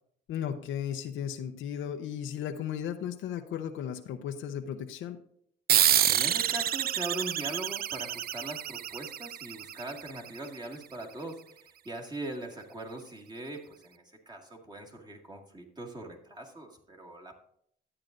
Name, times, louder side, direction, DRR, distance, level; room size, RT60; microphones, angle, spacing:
voice 1, 0.3-5.2, left 9 dB, 80° left, 6 dB, 0.6 m, -35 dB
sound 1, 5.7-10.7, right 11 dB, 50° right, 0.4 m, -28 dB
voice 2, 6.1-17.4, right 1 dB, 20° right, 0 dB, 1.9 m, -41 dB
12.5 x 8.7 x 2.6 m, 0.67 s
cardioid pair, 90°, 20 cm